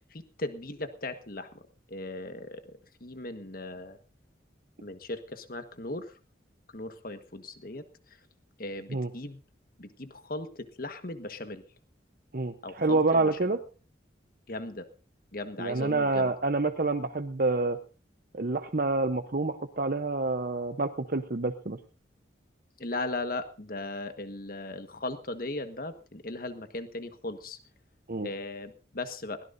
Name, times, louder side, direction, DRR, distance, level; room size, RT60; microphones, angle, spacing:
voice 1, 0.1-1.6 1.9-4.0 4.8-6.1 6.7-7.9 8.6-9.4 9.8-11.6 12.6-13.6 14.5-14.8 15.3-16.3 22.8-27.6 28.2-29.5, left 2 dB, 50° left, 9 dB, 1.5 m, -38 dB
voice 2, 12.3-13.6 15.6-17.8 18.3-21.8 28.1-28.3, right 3 dB, 50° right, 7 dB, 0.8 m, -27 dB
22.0 x 17.0 x 2.7 m, 0.35 s
head